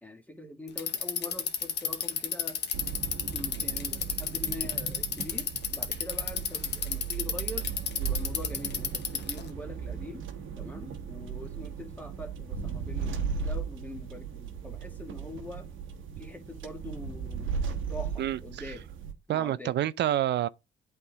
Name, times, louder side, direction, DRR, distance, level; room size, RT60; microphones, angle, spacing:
voice 1, 0.0-2.6 3.3-7.6 8.0-10.2 10.6-15.7 16.2-17.5 17.9-18.8 19.3-19.8, left 1 dB, 10° left, 1.5 m, -43 dB
Bicycle, 0.7-9.5, left 8 dB, 60° left, 1.0 m, -31 dB
sound 1, 2.7-19.1, right 6 dB, 80° right, 1.0 m, -37 dB
voice 2, 18.2-18.6 19.3-20.5, right 12 dB, 60° right, 0.4 m, -28 dB
8.3 x 3.5 x 3.6 m
cardioid pair, 90°, 20 cm